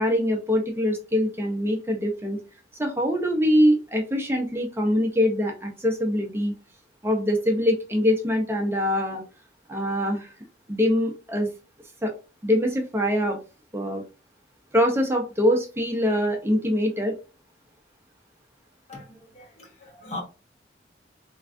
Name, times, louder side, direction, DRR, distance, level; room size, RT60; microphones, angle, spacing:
voice 1, 0.0-2.4 2.8-6.5 7.0-9.2 9.7-10.3 10.7-11.5 12.0-12.1 12.4-13.4 13.7-14.0 14.7-17.1, equal, 15° right, 0.5 m, -23 dB
voice 2, 18.9-20.2, left 2 dB, 35° left, 0.9 m, -39 dB
3.2 x 2.3 x 2.5 m
head